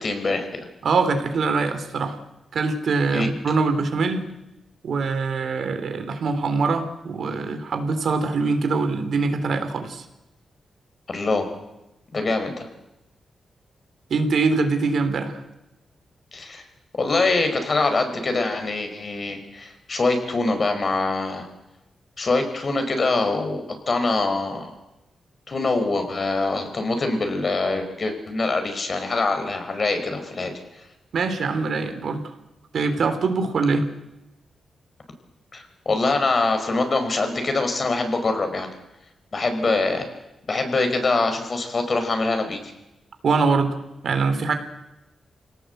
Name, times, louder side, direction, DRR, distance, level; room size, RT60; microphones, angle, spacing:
voice 1, 0.0-0.7 3.1-3.3 11.1-11.5 12.1-12.7 16.3-16.6 17.0-21.5 22.2-24.7 25.5-30.8 35.5-38.7 39.3-40.0 40.5-42.7, left 3 dB, 45° left, 7 dB, 4.9 m, -24 dB
voice 2, 0.8-2.2 2.5-4.2 4.8-10.0 14.1-15.4 31.1-32.3 32.7-33.9 43.2-43.8 44.0-44.5, right 4 dB, 70° right, 8 dB, 3.4 m, -23 dB
27.0 x 18.0 x 8.0 m, 0.96 s
cardioid pair, 95°, 0 cm